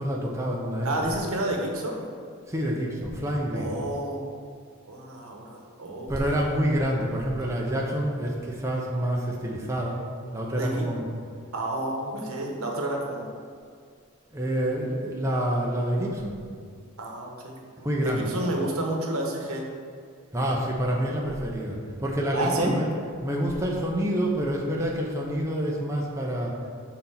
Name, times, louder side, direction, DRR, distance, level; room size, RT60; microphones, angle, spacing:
voice 1, 0.0-1.2 2.5-3.7 6.0-10.0 10.3-11.1 14.3-16.4 17.8-18.4 20.3-22.9 23.2-26.6, equal, 15° right, -3 dB, 0.7 m, -27 dB
voice 2, 0.8-2.1 3.5-4.3 4.9-6.4 10.6-10.9 11.5-13.2 17.0-17.5 18.0-19.6 22.3-22.7, right 1 dB, 75° right, 1 dB, 1.1 m, -30 dB
6.5 x 4.1 x 5.7 m, 2.2 s
head